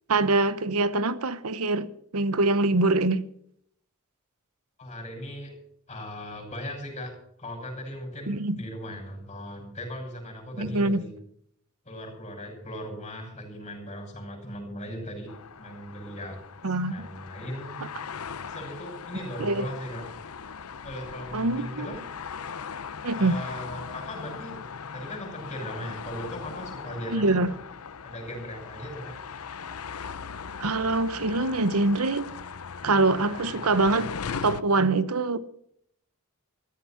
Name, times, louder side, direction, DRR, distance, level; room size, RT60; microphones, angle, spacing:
voice 1, 0.1-3.3 8.3-8.6 10.6-11.0 16.6-17.1 19.4-19.6 21.3-21.9 23.0-23.4 27.1-27.5 30.6-32.3 32.8-34.1 34.4-35.4, right 2 dB, 80° right, 1.0 m, -24 dB
voice 2, 4.8-5.5 5.9-7.1 7.4-11.1 11.8-16.4 16.9-17.8 18.4-20.0 20.8-22.0 23.1-24.5 24.9-27.6 28.0-29.1, equal, 30° left, 6.1 m, -38 dB
sound 1, 15.3-34.6, left 6 dB, 85° left, 0.7 m, -39 dB
14.0 x 14.0 x 5.8 m
head